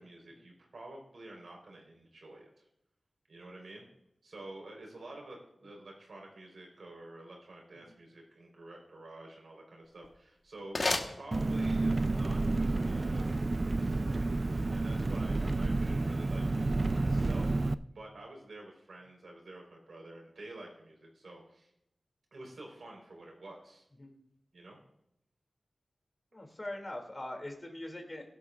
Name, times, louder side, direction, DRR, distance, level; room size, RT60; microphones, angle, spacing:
voice 1, 0.0-2.6 3.3-3.9 4.2-21.7 22.3-23.8 24.5-24.8, right 2 dB, 85° right, 0 dB, 4.0 m, -49 dB
sound 1, 9.8-11.9, left 2 dB, 55° left, 1.3 m, -36 dB
Engine, 11.3-17.7, right 2 dB, 45° right, 0.3 m, -30 dB
voice 2, 26.3-28.3, left 1 dB, 35° left, 2 dB, 2.5 m, -42 dB
17.0 x 11.5 x 2.5 m, 0.77 s
wide cardioid pair, 80°, 0 cm